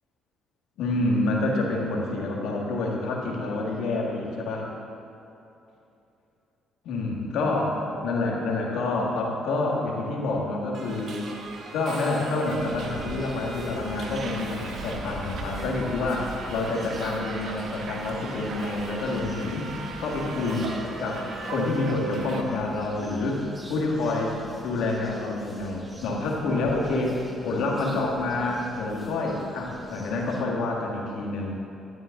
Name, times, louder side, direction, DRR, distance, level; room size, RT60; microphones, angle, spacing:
voice 1, 0.8-4.7 6.8-11.2 11.7-20.7 21.0-24.3 24.6-31.5, left 2 dB, 80° left, -1 dB, 2.0 m, -28 dB
Subway metro underground, 10.7-22.4, right 3 dB, 60° right, 1.2 m, -37 dB
sound 1, 12.9-30.4, left 1 dB, 15° right, 1.6 m, -44 dB
12.5 x 11.5 x 3.8 m, 2.8 s
cardioid pair, 80°, 0 cm